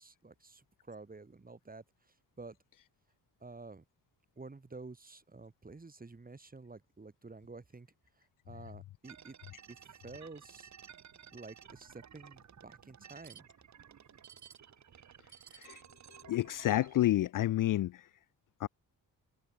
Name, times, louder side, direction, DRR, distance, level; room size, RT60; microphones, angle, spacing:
voice 1, 0.0-2.6 3.4-3.8 4.4-7.9 8.2-9.3 9.7-10.7 11.3-13.5, right 3 dB, 20° right, 3.4 m, -50 dB
sound 1, 9.0-17.0, right 8 dB, 45° right, 1.2 m, -55 dB
voice 2, 16.3-18.0 18.6-18.7, left 14 dB, 55° left, 0.5 m, -29 dB
cardioid pair, 95°, 39 cm